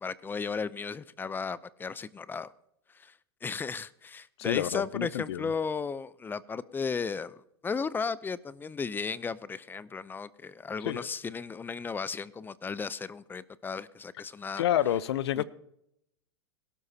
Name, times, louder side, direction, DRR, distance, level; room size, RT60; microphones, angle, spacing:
voice 1, 0.0-2.5 2.9-3.1 3.4-14.6 15.4-15.5, left 5 dB, 15° left, 0.5 m, -35 dB
voice 2, 4.4-5.5 10.8-11.1 14.6-15.4, left 11 dB, 70° left, 0.7 m, -29 dB
21.5 x 12.5 x 2.8 m
hypercardioid pair, 105°, 14 cm